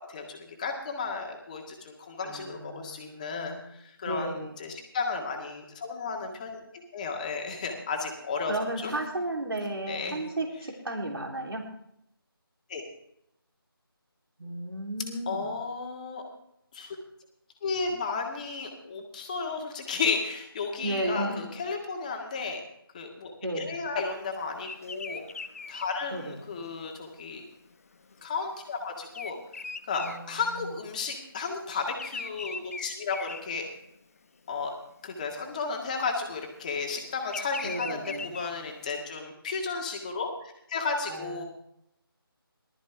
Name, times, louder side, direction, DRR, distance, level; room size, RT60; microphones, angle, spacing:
voice 1, 0.1-3.5 3.8-8.9 9.9-10.3 12.7-12.8 15.3-16.2 16.7-17.0 17.6-22.6 22.9-25.2 25.7-27.4 28.2-29.4 29.9-33.6 34.5-34.7 35.0-41.4, left 4 dB, 20° left, 2 dB, 1.9 m, -33 dB
voice 2, 2.2-3.6 4.1-4.6 8.5-11.7 14.4-15.5 20.8-21.5 23.4-23.8 26.1-26.4 30.0-30.7 37.6-38.4 41.1-41.4, right 1 dB, 75° right, 0 dB, 3.5 m, -34 dB
Bird vocalization bird call bird song, 24.6-31.0 31.3-34.2 34.7-35.0 36.0-39.0, left 4 dB, 35° left, 0.8 m, -41 dB
19.0 x 13.0 x 3.5 m, 0.75 s
figure-of-eight pair, 165°, 13 cm